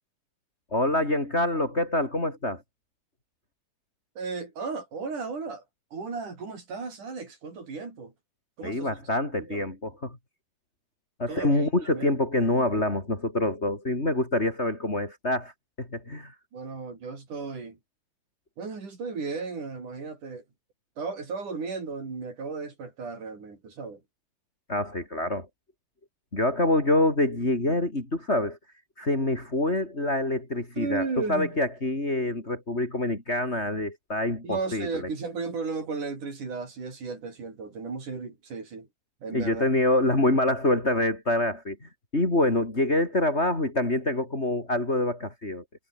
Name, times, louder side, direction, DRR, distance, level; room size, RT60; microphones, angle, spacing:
voice 1, 0.7-2.6 8.6-10.2 11.2-16.3 24.7-25.5 26.3-28.6 29.0-35.1 39.3-45.6, left 1 dB, 20° left, 5.1 m, -26 dB
voice 2, 4.2-5.6 5.9-8.1 8.6-9.0 9.3-9.7 11.3-12.2 16.5-17.8 18.6-20.4 21.0-24.0 30.8-31.6 34.4-38.9 39.2-39.6, right 4 dB, 70° right, 7.2 m, -35 dB
omnidirectional pair, 3.7 m